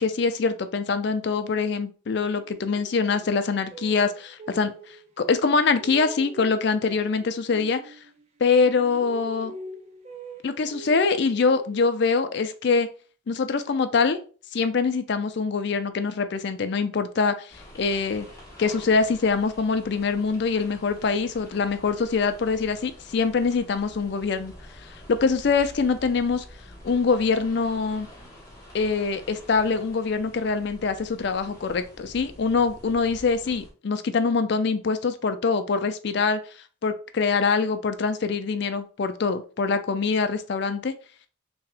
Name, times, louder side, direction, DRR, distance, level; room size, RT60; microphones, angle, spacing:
voice 1, 0.0-4.7 5.2-7.9 8.4-9.5 10.4-12.9 13.3-14.2 14.5-18.3 18.6-24.5 25.1-26.4 26.8-28.1 28.7-36.4 36.8-40.9, left 4 dB, 60° left, 9 dB, 0.4 m, -24 dB
sound 1, 2.4-5.1 5.4-8.4 8.6-12.2, right 3 dB, 35° right, 0.5 m, -43 dB
sound 2, 17.5-33.7, left 1 dB, 15° left, 1.1 m, -47 dB
3.5 x 2.8 x 3.3 m, 0.38 s
head